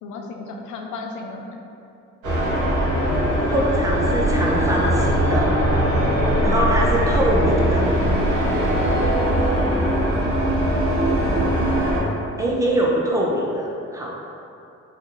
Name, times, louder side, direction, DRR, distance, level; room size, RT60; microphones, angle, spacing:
voice 1, 0.0-1.6 9.2-9.8, left 3 dB, 80° left, 2 dB, 0.5 m, -34 dB
sound 1, 2.2-12.0, equal, 75° right, 1.2 m, -20 dB
voice 2, 3.5-5.5 6.4-7.9 12.4-14.1, equal, 10° right, -3 dB, 0.6 m, -23 dB
4.0 x 2.3 x 2.9 m, 2.7 s
cardioid pair, 90°, 30 cm